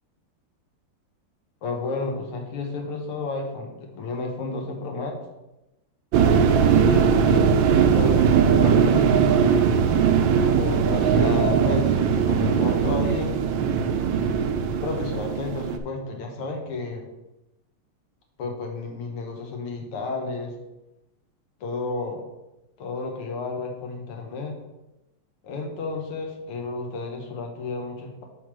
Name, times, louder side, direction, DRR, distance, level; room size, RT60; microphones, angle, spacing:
voice 1, 1.6-5.2 6.6-9.3 10.5-12.0 12.3-13.4 14.8-17.1 18.4-20.5 21.6-22.3 22.8-24.6 25.4-28.2, left 3 dB, 90° left, 1 dB, 2.0 m, -31 dB
sound 1, 6.1-15.8, right 7 dB, 75° right, 1.2 m, -20 dB
7.0 x 3.4 x 6.0 m, 0.95 s
omnidirectional pair, 2.4 m